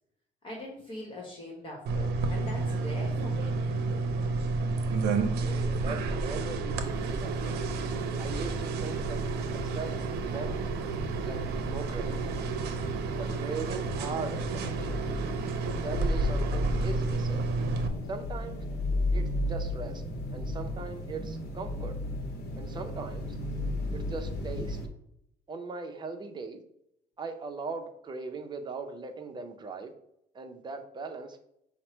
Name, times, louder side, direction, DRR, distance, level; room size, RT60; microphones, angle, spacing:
voice 1, 0.4-3.6 4.7-4.9 14.1-14.2, left 1 dB, 30° left, -2 dB, 1.2 m, -42 dB
sound 1, 1.9-17.9, right 3 dB, 75° right, 0.6 m, -31 dB
voice 2, 5.2-7.6 8.2-9.2 9.5-10.6 11.2-12.3 13.2-15.0 15.6-17.5 18.1-18.6 19.1-20.0 20.3-21.9 22.6-23.4 23.9-24.8 25.5-26.6 27.2-29.9 30.3-31.4, right 4 dB, 25° right, 5 dB, 0.7 m, -39 dB
sound 2, 6.8-24.9, left 2 dB, 70° left, 0.9 m, -35 dB
5.5 x 2.1 x 4.4 m, 0.77 s
cardioid pair, 110°, 17 cm